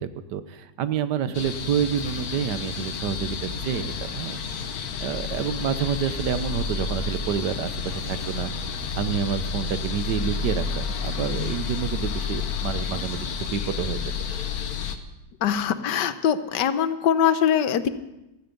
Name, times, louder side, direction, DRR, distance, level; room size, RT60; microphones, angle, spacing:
voice 1, 0.0-4.4 5.0-14.0, right 8 dB, 80° right, 12 dB, 1.5 m, -28 dB
sound 1, 1.3-15.0, left 5 dB, 65° left, 1.5 m, -30 dB
voice 2, 15.4-17.9, left 8 dB, 90° left, 12 dB, 1.5 m, -22 dB
16.0 x 14.0 x 5.3 m, 0.95 s
omnidirectional pair, 1.8 m